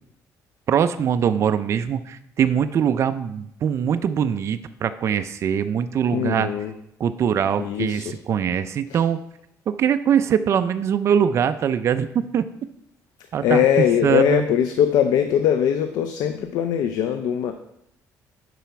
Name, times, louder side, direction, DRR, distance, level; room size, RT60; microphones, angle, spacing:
voice 1, 0.7-6.5 7.0-9.2 9.7-12.4 13.3-14.4, right 8 dB, 45° right, 10 dB, 0.4 m, -22 dB
voice 2, 6.1-6.7 7.6-8.1 8.9-9.0 13.4-17.5, left 9 dB, 80° left, 7 dB, 0.6 m, -21 dB
9.2 x 4.2 x 5.7 m, 0.77 s
cardioid pair, 135°, 7 cm